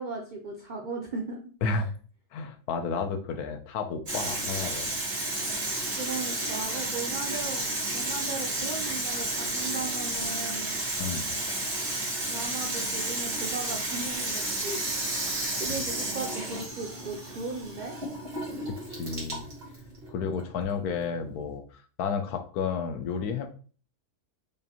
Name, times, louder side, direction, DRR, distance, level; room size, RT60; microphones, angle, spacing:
voice 1, 0.0-1.4 1.7-1.8 6.0-7.6 7.9-10.8 12.3-14.8 15.6-17.9, right 3 dB, 80° right, 1 dB, 0.4 m, -37 dB
voice 2, 2.3-4.9 11.0-11.4 15.7-15.9 18.7-19.4 20.1-23.5, left 5 dB, 80° left, 6 dB, 1.1 m, -32 dB
Water tap faucet / Sink (filling or washing), 4.1-21.5, right 2 dB, 45° right, 1.5 m, -32 dB
5.1 x 2.6 x 2.8 m, 0.40 s
omnidirectional pair, 1.6 m